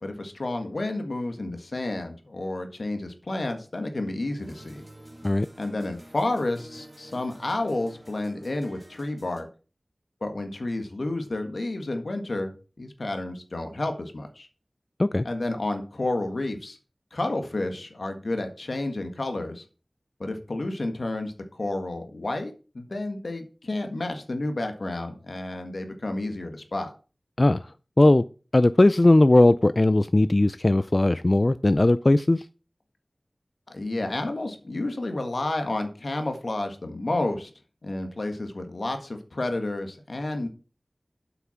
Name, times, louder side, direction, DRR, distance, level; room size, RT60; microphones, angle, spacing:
voice 1, 0.0-4.8 5.6-9.5 10.2-14.5 15.2-16.8 17.1-19.6 20.2-26.9 33.7-37.5 37.8-40.5, left 2 dB, 80° left, 6 dB, 1.6 m, -30 dB
sound 1, 4.4-9.4, right 1 dB, 30° right, 1.9 m, -48 dB
voice 2, 27.4-27.7 28.0-28.2 28.5-32.5, left 2 dB, 45° left, 14 dB, 0.3 m, -18 dB
7.9 x 5.9 x 5.7 m, 0.36 s
wide cardioid pair, 50°, 0 cm